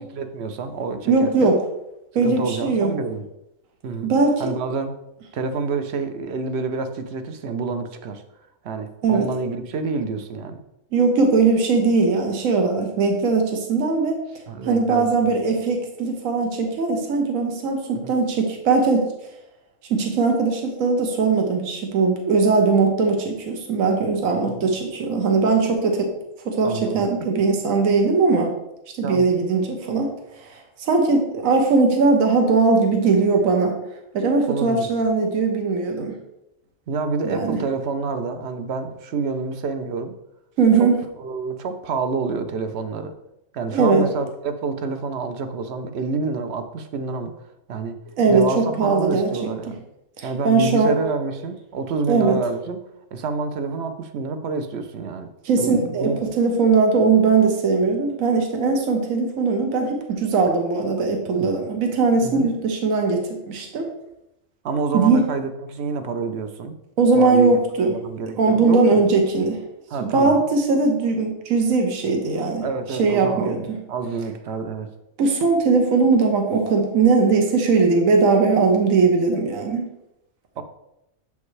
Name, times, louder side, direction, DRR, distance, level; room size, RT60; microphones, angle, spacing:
voice 1, 0.1-1.5 2.2-3.3 3.8-4.1 4.4-5.0 5.3-8.2 8.6-10.6 14.5-15.4 17.9-18.1 24.4-24.7 26.6-27.1 29.0-29.3 34.5-34.9 36.9-40.1 40.8-40.9 41.2-43.1 43.5-47.3 47.7-48.0 48.3-49.8 50.2-52.8 53.1-55.3 55.6-56.2 61.3-61.5 62.2-62.5 64.6-66.8 67.1-69.1 69.9-70.4 72.6-74.9 80.6-80.7, right 4 dB, 60° right, 8 dB, 0.8 m, -28 dB
voice 2, 1.1-1.6 2.1-2.9 4.0-4.4 9.0-9.3 10.9-14.2 14.6-19.1 19.9-26.1 26.4-28.5 29.0-30.1 30.4-30.5 30.8-33.8 34.1-36.1 37.2-37.6 40.6-41.0 43.7-44.1 48.2-49.5 50.2-51.0 52.1-52.4 55.4-63.9 64.9-65.2 67.0-68.0 68.4-69.6 70.0-72.6 73.0-73.8 75.2-79.9, right 4 dB, 80° right, 3 dB, 1.3 m, -19 dB
7.3 x 5.2 x 3.2 m, 0.86 s
omnidirectional pair, 1.4 m